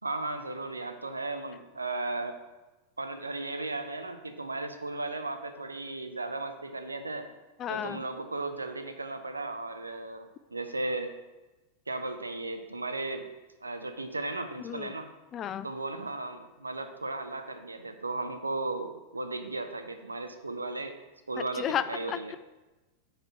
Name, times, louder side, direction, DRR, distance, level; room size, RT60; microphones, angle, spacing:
voice 1, 0.0-2.3 3.0-7.3 7.7-11.1 11.9-13.3 13.6-15.1 15.6-20.9 21.3-22.3, right 2 dB, 80° right, 7 dB, 0.6 m, -35 dB
voice 2, 7.6-8.0 14.6-14.9 15.3-15.7 21.5-22.4, left 9 dB, 30° left, 13 dB, 0.3 m, -33 dB
5.1 x 4.3 x 6.1 m, 1.1 s
figure-of-eight pair, 90°, 0 cm